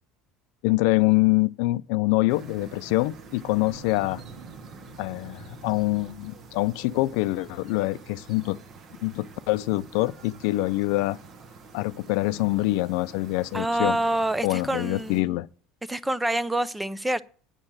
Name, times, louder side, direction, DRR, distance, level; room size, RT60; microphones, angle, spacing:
voice 1, 0.6-4.2 5.0-8.6 9.0-11.2 11.7-14.0 14.4-15.5, left 20 dB, 70° left, 0.5 m, -25 dB
sound 1, 2.3-15.2, right 4 dB, 35° right, 1.1 m, -46 dB
sound 2, 3.2-6.5, right 4 dB, 75° right, 2.6 m, -49 dB
voice 2, 13.5-15.4 15.9-17.2, right 1 dB, 5° right, 0.5 m, -27 dB
8.9 x 6.5 x 7.3 m
cardioid pair, 150°, 0 cm